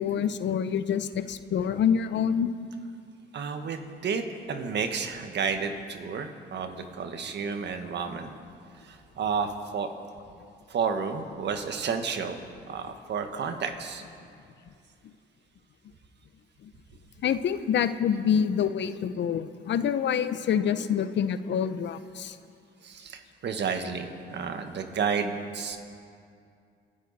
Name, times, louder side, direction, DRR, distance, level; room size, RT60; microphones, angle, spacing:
voice 1, 0.0-2.5 16.6-16.7 17.2-22.4, left 8 dB, 65° left, 12 dB, 0.7 m, -26 dB
voice 2, 3.3-8.3 8.8-9.9 10.7-12.4 12.7-14.0 22.8-25.8, right 6 dB, 60° right, 6 dB, 1.5 m, -31 dB
29.0 x 11.0 x 4.2 m, 2.4 s
cardioid pair, 90°, 20 cm